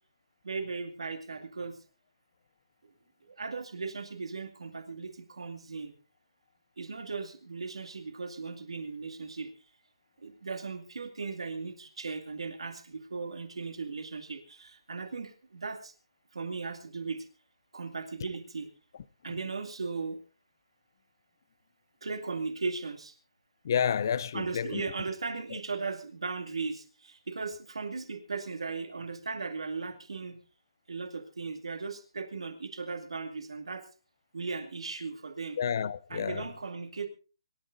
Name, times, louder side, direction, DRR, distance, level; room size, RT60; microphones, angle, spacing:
voice 1, 0.4-1.8 3.4-5.9 6.8-9.5 10.2-15.9 16.3-17.3 17.7-18.7 19.2-20.2 22.0-23.1 24.3-30.4 30.9-33.9 34.3-35.6 36.1-37.1, right 4 dB, 80° right, 2.3 m, -37 dB
voice 2, 23.6-24.9 25.5-25.6 35.6-36.5, left 8 dB, 40° left, 0.6 m, -30 dB
25.5 x 13.5 x 2.6 m
hypercardioid pair, 170°, 3 cm